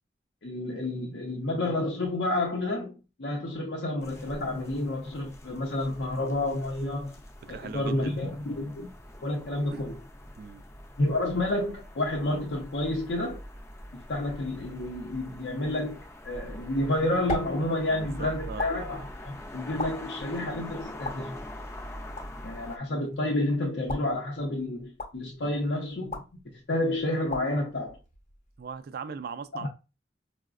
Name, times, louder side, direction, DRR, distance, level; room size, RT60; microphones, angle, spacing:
voice 1, 0.4-7.1 7.5-8.9 9.2-10.0 11.0-13.4 13.9-21.5 22.4-28.0 29.6-29.7, left 1 dB, 70° left, 0.6 m, -30 dB
sound 1, 4.0-22.8, left 1 dB, 15° left, 0.4 m, -44 dB
voice 2, 7.5-8.1 9.7-9.8 10.4-10.6 17.9-18.6 25.4-25.5 28.6-29.7, right 5 dB, 55° right, 0.3 m, -39 dB
sound 2, 16.6-28.8, left 2 dB, 45° left, 0.8 m, -41 dB
4.8 x 2.1 x 2.3 m
head